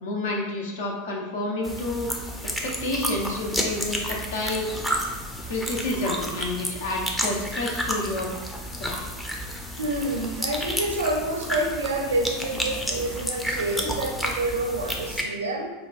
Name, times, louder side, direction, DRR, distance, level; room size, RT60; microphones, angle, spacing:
voice 1, 0.0-2.1 2.6-4.7 5.5-8.3 8.8-9.0, left 2 dB, 65° left, -1 dB, 0.7 m, -29 dB
sound 1, 1.6-15.2, equal, 10° left, 0.5 m, -31 dB
voice 2, 9.8-15.7, right 2 dB, 70° right, 2 dB, 0.5 m, -28 dB
4.8 x 2.3 x 2.4 m, 1.2 s
figure-of-eight pair, 80°, 0 cm